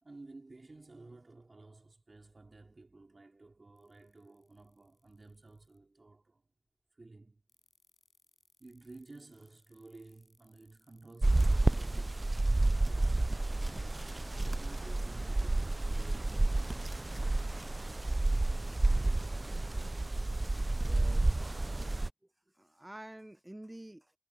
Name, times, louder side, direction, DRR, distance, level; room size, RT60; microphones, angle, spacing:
voice 1, 0.0-6.5 6.9-7.4 8.6-16.4, right 2 dB, 75° right, 4.3 m, -54 dB
sound 1, 3.8-5.8 7.5-12.2 13.1-14.9, left 2 dB, 65° left, 5.7 m, -71 dB
sound 2, 11.2-22.1, right 2 dB, 50° right, 0.3 m, -30 dB
voice 2, 20.8-21.6 22.2-24.1, right 1 dB, 25° right, 0.8 m, -50 dB
wide cardioid pair, 55°, 0 cm